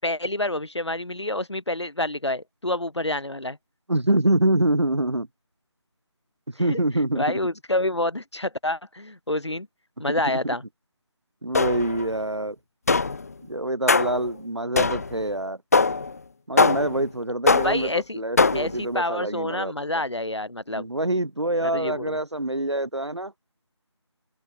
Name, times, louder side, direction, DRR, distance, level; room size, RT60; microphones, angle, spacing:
voice 1, 0.0-3.6 6.6-6.8 7.1-9.7 10.0-10.6 17.6-18.2 18.5-20.9 21.6-22.2, left 1 dB, 70° left, 7.8 m, -28 dB
voice 2, 3.9-5.3 6.6-7.4 10.1-10.4 11.4-12.6 13.4-15.6 16.5-19.7 20.7-23.3, right 1 dB, 70° right, 4.3 m, -25 dB
sound 1, 11.5-12.1 12.9-13.3 13.9-14.3 14.8-15.2 15.7-16.1 16.6-17.0 17.5-17.9 18.4-18.8, left 4 dB, 30° left, 1.2 m, -21 dB
figure-of-eight pair, 160°, 15 cm